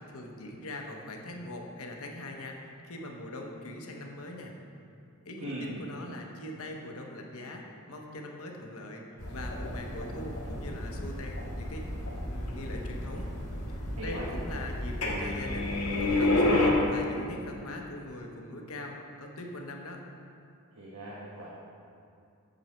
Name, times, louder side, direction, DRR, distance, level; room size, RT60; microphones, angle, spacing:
voice 1, 0.0-4.5 5.2-9.0 9.3-11.9 12.3-13.3 13.7-15.7 16.0-20.0, left 1 dB, 70° left, 1 dB, 1.0 m, -41 dB
voice 2, 5.4-5.7 13.9-14.3 20.7-21.5, right 1 dB, 85° right, -6 dB, 1.3 m, -39 dB
sound 1, 9.2-16.7, left 2 dB, 85° left, 1.4 m, -31 dB
7.9 x 7.0 x 4.4 m, 2.5 s
head